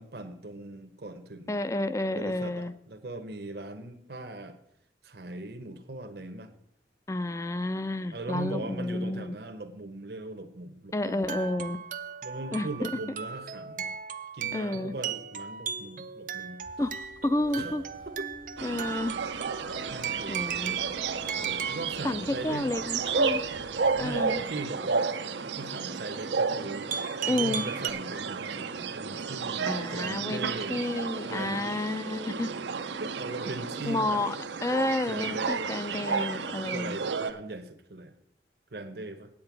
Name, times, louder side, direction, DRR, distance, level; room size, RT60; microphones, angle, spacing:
voice 1, 0.0-1.6 2.1-4.6 5.0-6.5 8.1-11.7 12.2-14.0 14.3-16.6 17.6-18.3 19.9-20.6 21.4-22.7 24.0-25.1 25.5-26.9 27.3-30.8 31.3-31.7 33.0-34.2 35.1-35.8 36.7-38.1 38.7-39.3, right 2 dB, 65° right, 6 dB, 0.9 m, -39 dB
voice 2, 1.5-2.7 7.1-9.4 10.9-11.8 12.5-12.9 14.5-14.9 16.8-17.8 18.6-19.1 20.3-20.8 22.0-23.4 24.0-24.4 27.3-27.6 29.7-32.5 33.9-34.4 34.6-37.0, left 2 dB, 15° left, 14 dB, 0.4 m, -30 dB
sound 1, 11.0-22.0 26.9-27.9, right 7 dB, 45° right, 0.5 m, -36 dB
sound 2, 16.6-24.4, left 1 dB, 50° left, 1.6 m, -53 dB
sound 3, 18.6-37.3, right 5 dB, 85° right, 0.7 m, -32 dB
8.7 x 8.5 x 6.0 m, 0.74 s
head